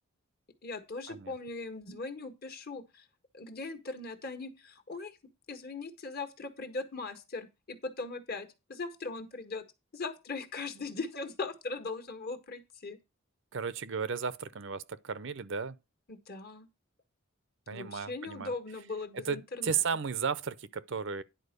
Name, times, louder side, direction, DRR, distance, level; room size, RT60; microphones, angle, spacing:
voice 1, 0.6-3.1 3.3-5.2 5.5-9.6 9.9-13.0 16.1-16.7 17.7-20.0, left 3 dB, 45° left, 1.5 m, -39 dB
voice 2, 13.5-15.8 17.7-18.5 19.1-21.2, right 6 dB, 60° right, 0.6 m, -34 dB
10.5 x 4.4 x 6.6 m
head